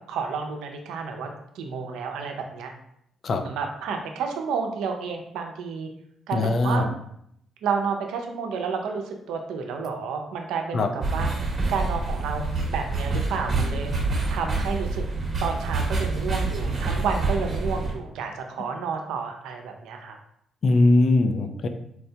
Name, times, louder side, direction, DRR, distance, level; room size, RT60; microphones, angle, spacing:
voice 1, 0.1-1.3 1.5-2.7 3.4-5.9 6.3-6.9 7.6-11.3 11.7-13.9 14.3-15.0 15.4-20.2, right 5 dB, 85° right, 4 dB, 0.5 m, -30 dB
voice 2, 6.3-6.9 10.7-10.9 20.6-21.7, left 2 dB, 50° left, 7 dB, 0.4 m, -20 dB
sound 1, 11.0-17.9, right 3 dB, 40° right, 0.9 m, -27 dB
4.4 x 2.2 x 2.7 m, 0.72 s
cardioid pair, 90°, 0 cm